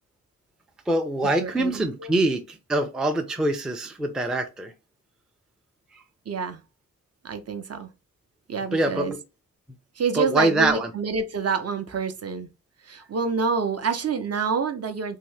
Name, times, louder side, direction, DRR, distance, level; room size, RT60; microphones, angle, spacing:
voice 1, 0.9-4.7 8.7-9.2 10.1-10.9, right 2 dB, ahead, 0.4 m, -24 dB
voice 2, 1.4-2.2 6.3-6.6 7.2-7.9 8.5-9.1 10.0-12.5 12.8-15.2, right 5 dB, 45° right, 0.6 m, -27 dB
2.8 x 2.7 x 3.2 m
wide cardioid pair, 120°, 34 cm